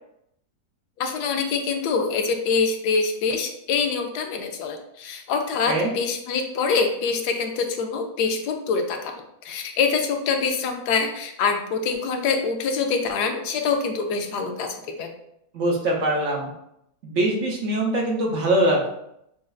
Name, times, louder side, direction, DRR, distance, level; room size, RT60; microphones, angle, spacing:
voice 1, 1.0-9.1 9.4-15.1, left 5 dB, 85° left, 4 dB, 1.2 m, -25 dB
voice 2, 15.5-16.5 17.0-18.9, right 1 dB, 60° right, -1 dB, 1.0 m, -22 dB
6.2 x 2.5 x 2.3 m, 0.78 s
omnidirectional pair, 1.7 m